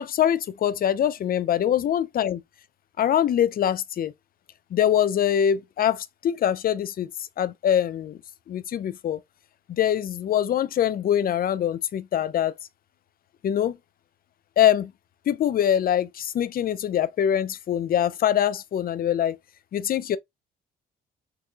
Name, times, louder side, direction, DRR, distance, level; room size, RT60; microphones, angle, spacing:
voice 1, 0.0-2.4 3.0-4.1 4.7-7.1 7.4-8.2 8.5-9.2 9.7-12.5 13.4-13.8 14.6-14.9 15.3-19.4 19.7-20.2, left 10 dB, 50° left, 0.4 m, -23 dB
4.0 x 2.6 x 2.3 m
cardioid pair, 90°, 20 cm